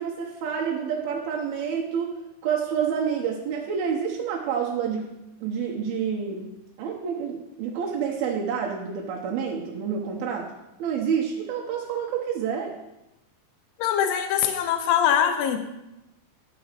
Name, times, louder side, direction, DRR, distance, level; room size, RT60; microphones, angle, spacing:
voice 1, 0.0-2.2 2.4-5.1 5.4-6.5 6.8-10.5 10.8-12.8, right 7 dB, 80° right, -2 dB, 2.8 m, -28 dB
voice 2, 13.8-15.6, left 9 dB, 80° left, 6 dB, 2.3 m, -22 dB
11.5 x 5.0 x 6.5 m, 0.93 s
omnidirectional pair, 4.3 m